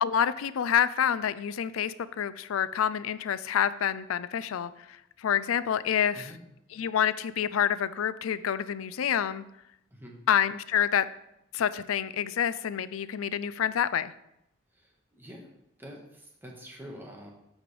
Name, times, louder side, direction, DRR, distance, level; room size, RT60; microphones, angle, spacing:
voice 1, 0.0-6.3 6.7-9.4 10.3-11.1 11.5-14.1, left 9 dB, 90° left, 16 dB, 0.4 m, -28 dB
voice 2, 14.8-15.5 15.8-17.3, equal, 10° right, 0 dB, 1.4 m, -46 dB
14.5 x 5.2 x 3.3 m, 0.82 s
head